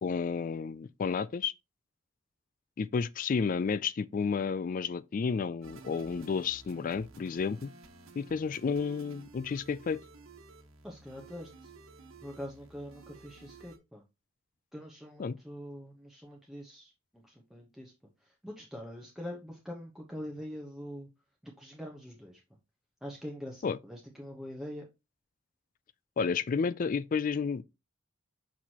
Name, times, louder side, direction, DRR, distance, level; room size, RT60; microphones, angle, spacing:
voice 1, 0.0-1.5 2.8-7.7 8.2-10.0 15.2-15.4 23.6-23.8 26.2-27.6, left 5 dB, 40° left, 0.3 m, -31 dB
sound 1, 5.6-13.8, right 4 dB, 90° right, 1.3 m, -53 dB
voice 2, 10.8-11.7 12.2-14.0 14.7-17.9 18.2-21.1 21.4-22.4 23.0-24.9, equal, ahead, 1.0 m, -44 dB
6.3 x 5.9 x 2.9 m
head